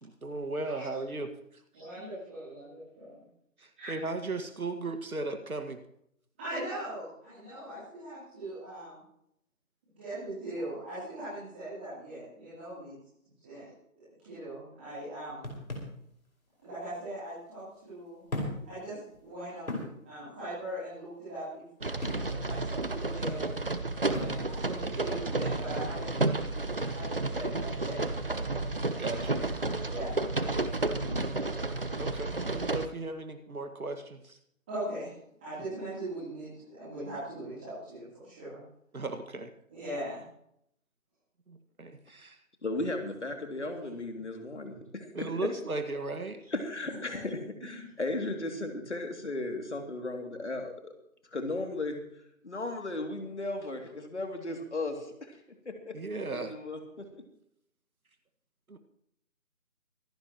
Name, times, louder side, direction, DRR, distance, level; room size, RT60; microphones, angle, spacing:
voice 1, 0.0-1.3 3.6-5.8 24.1-24.4 29.0-29.4 29.9-30.1 32.0-34.4 38.9-39.5 41.5-42.4 45.1-46.4 55.9-56.5 58.7-58.8, right 3 dB, 85° right, 7 dB, 2.0 m, -36 dB
voice 2, 1.7-3.2 3.8-3.9 6.4-9.0 10.0-12.9 13.4-13.7 14.2-15.5 16.6-18.2 18.6-18.9 19.2-21.6 22.3-23.5 24.2-26.3 26.8-28.1 29.8-30.2 30.8-31.2 34.7-35.1 35.4-38.6 39.7-40.2 46.8-47.4 47.7-47.8, right 1 dB, 10° right, -15 dB, 3.3 m, -40 dB
sound 1, 15.4-16.0 17.1-17.2 18.3-18.7 19.1-19.2 19.7-20.0 22.0-22.3 24.1-24.5, left 1 dB, 80° left, 5.3 m, -36 dB
sound 2, 21.8-32.9, right 2 dB, 40° right, 0.9 m, -31 dB
voice 3, 42.6-45.5 46.5-50.9 51.3-52.0 52.4-55.4 55.6-56.0 56.3-57.1, left 2 dB, 55° left, 4 dB, 2.8 m, -35 dB
25.0 x 12.0 x 3.1 m, 0.73 s
figure-of-eight pair, 175°, 42 cm